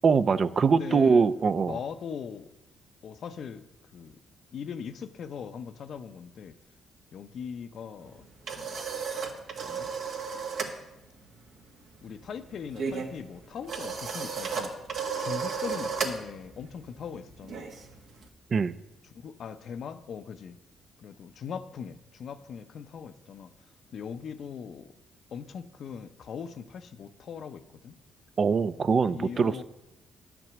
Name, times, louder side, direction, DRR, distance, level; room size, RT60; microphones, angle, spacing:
voice 1, 0.0-1.8 18.5-18.7 28.4-29.6, right 5 dB, 45° right, 14 dB, 0.6 m, -23 dB
voice 2, 0.8-1.3 1.6-2.5 3.0-3.7 3.9-4.2 4.5-6.6 7.1-8.3 8.5-8.8 9.6-9.9 12.0-14.7 15.2-17.7 19.0-20.6 21.0-24.9 25.3-28.0 29.1-29.6, left 7 dB, 60° left, 10 dB, 0.7 m, -40 dB
sound 1, 8.1-10.8 11.0-11.3 11.6-18.3, right 5 dB, 65° right, 1.7 m, -34 dB
10.5 x 6.1 x 8.0 m, 0.96 s
cardioid pair, 90°, 0 cm